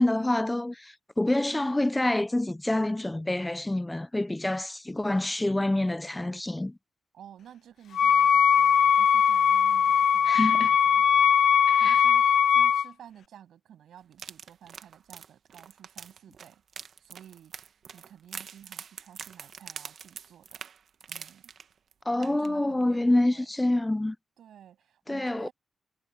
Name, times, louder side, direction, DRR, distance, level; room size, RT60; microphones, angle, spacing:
voice 1, 0.0-6.8 10.3-10.7 11.7-12.0 22.1-24.2 25.1-25.5, left 1 dB, 10° left, 0.5 m, -27 dB
voice 2, 7.1-17.6 17.9-20.6 21.1-21.5 22.1-23.5 24.4-25.5, right 10 dB, 85° right, 7.7 m, -52 dB
Wind instrument woodwind instrument, 7.9-12.9, left 8 dB, 70° left, 0.4 m, -20 dB
sound 1, 14.1-21.9 22.2-22.5 22.8-22.9, right 7 dB, 65° right, 1.1 m, -44 dB
cardioid pair, 100°, 0 cm